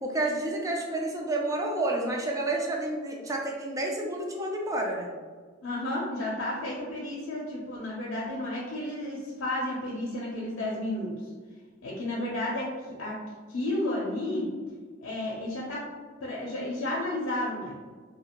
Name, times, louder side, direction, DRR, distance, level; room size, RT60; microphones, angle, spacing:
voice 1, 0.0-5.1, right 2 dB, 15° right, 0 dB, 0.4 m, -30 dB
voice 2, 5.6-11.1 11.8-12.7 13.0-13.2 13.5-14.5 15.0-15.8 16.2-17.7, left 1 dB, 80° left, -5 dB, 0.5 m, -32 dB
2.7 x 2.4 x 2.9 m, 1.5 s
head